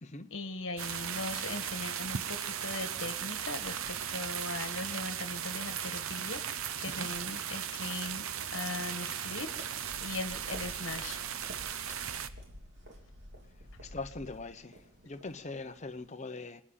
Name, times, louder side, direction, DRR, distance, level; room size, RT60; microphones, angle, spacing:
voice 1, 0.3-9.5 10.0-11.2 11.7-12.1, left 2 dB, 60° left, 1.6 m, -40 dB
sound 1, 0.8-12.3, right 8 dB, 75° right, 0.8 m, -37 dB
sound 2, 9.1-16.1, equal, 55° right, 3.0 m, -51 dB
voice 2, 13.8-14.8 15.0-16.6, left 3 dB, 35° left, 0.9 m, -41 dB
25.0 x 10.0 x 5.7 m
head